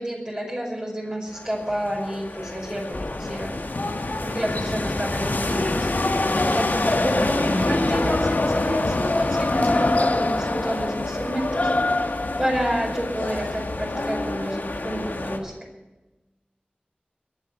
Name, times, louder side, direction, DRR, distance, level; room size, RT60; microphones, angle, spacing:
voice 1, 0.0-3.5 4.2-5.9 6.5-11.7 12.4-15.5, equal, 25° right, -3 dB, 5.2 m, -29 dB
sound 1, 1.3-15.4, left 2 dB, 75° left, 1.8 m, -29 dB
sound 2, 2.9-12.5, left 2 dB, 50° left, 0.8 m, -26 dB
21.5 x 7.4 x 8.0 m, 1.1 s
wide cardioid pair, 50°, 3 cm